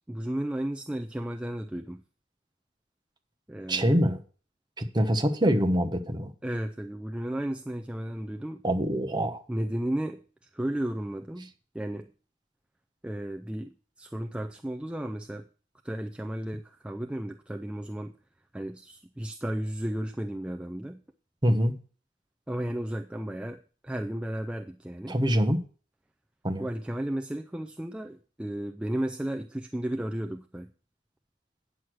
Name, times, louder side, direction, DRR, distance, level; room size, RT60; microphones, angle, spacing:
voice 1, 0.1-2.0 3.5-4.0 6.4-8.6 9.5-10.2 10.5-12.1 13.0-15.5 15.8-18.1 18.5-21.0 22.5-25.2 26.6-30.7, right 1 dB, 5° right, 4 dB, 0.4 m, -34 dB
voice 2, 3.7-4.2 4.8-6.3 8.6-9.4 21.4-21.8 25.1-25.6 26.4-26.6, equal, 25° right, 7 dB, 1.0 m, -24 dB
9.6 x 6.3 x 6.1 m, 0.39 s
head